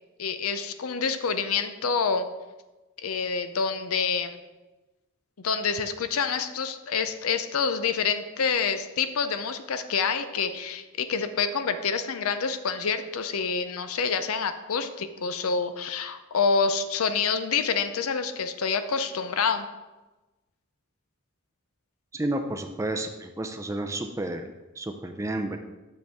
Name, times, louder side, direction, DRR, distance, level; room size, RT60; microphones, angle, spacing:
voice 1, 0.2-2.3 3.0-4.4 5.4-19.7, left 5 dB, 85° left, 10 dB, 0.5 m, -27 dB
voice 2, 22.1-25.6, right 1 dB, 15° right, 6 dB, 0.4 m, -31 dB
6.8 x 6.3 x 3.5 m, 1.1 s
head